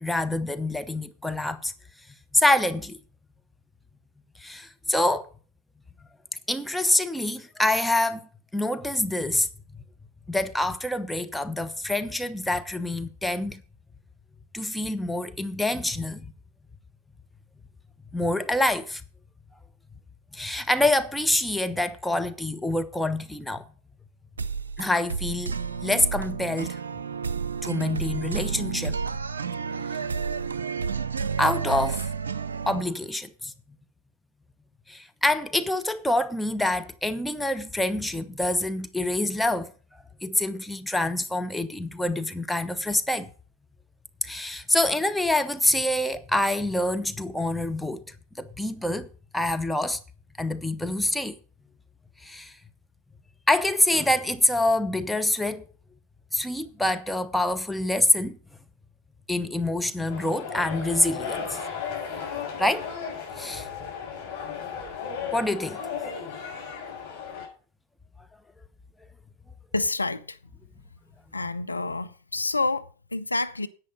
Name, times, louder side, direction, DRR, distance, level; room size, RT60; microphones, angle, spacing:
voice 1, 0.0-1.7 2.3-3.0 4.4-5.3 6.5-9.5 10.3-13.6 14.5-16.3 18.1-19.0 20.3-23.6 24.8-25.6 25.8-26.8 27.6-29.0 31.4-32.0 32.7-33.5 34.9-39.7 40.2-43.3 44.2-48.0 48.4-49.1 49.3-50.0 50.4-51.4 52.2-52.5 53.5-55.6 56.3-58.4 59.3-61.6 62.6-62.9 63.4-63.7 65.3-65.8, left 1 dB, 5° left, 1.0 m, -26 dB
sound 1, 24.4-32.8, right 5 dB, 70° right, 0.6 m, -30 dB
sound 2, 60.1-67.5, left 6 dB, 50° left, 6.4 m, -35 dB
voice 2, 69.7-70.4 71.3-73.7, left 3 dB, 80° left, 0.7 m, -28 dB
10.5 x 9.1 x 5.3 m
figure-of-eight pair, 90°, 0 cm